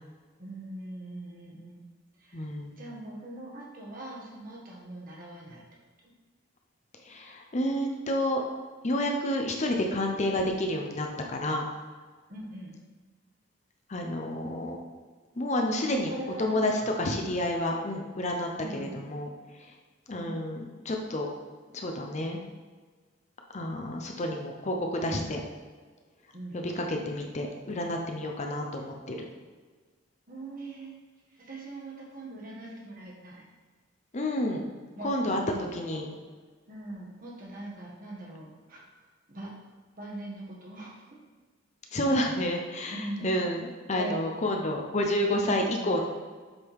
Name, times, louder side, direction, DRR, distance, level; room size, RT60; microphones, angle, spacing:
voice 1, 0.4-1.8 2.2-2.4 2.8-5.6 12.3-12.8 15.8-16.9 18.6-19.0 20.1-20.4 26.3-26.6 30.3-31.0 31.3-33.4 34.9-36.1 36.7-38.8 39.3-39.5 40.0-41.1 42.9-44.4 45.2-46.0, right 1 dB, 45° right, -3 dB, 1.5 m, -41 dB
voice 2, 2.3-2.8 7.0-8.4 8.8-11.6 13.9-14.8 15.4-16.1 16.4-19.3 20.1-21.3 21.7-22.4 23.5-25.4 26.5-29.2 34.1-34.6 35.0-35.4 35.7-36.1 41.9-43.6 43.9-46.0, left 1 dB, 35° left, 2 dB, 0.6 m, -29 dB
7.8 x 3.7 x 4.7 m, 1.4 s
head